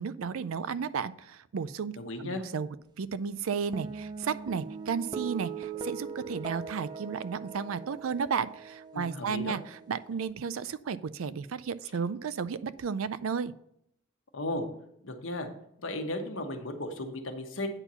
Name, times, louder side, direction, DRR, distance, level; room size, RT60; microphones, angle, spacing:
voice 1, 0.0-2.0 2.2-2.7 3.0-13.5, right 6 dB, 90° right, 16 dB, 0.4 m, -33 dB
voice 2, 2.0-2.4 8.9-9.6 14.3-14.7 15.0-15.5 15.8-17.7, left 1 dB, 70° left, 5 dB, 1.2 m, -35 dB
sound 1, 3.7-10.3, right 6 dB, 20° right, 0.6 m, -41 dB
8.8 x 4.5 x 5.6 m, 0.75 s
head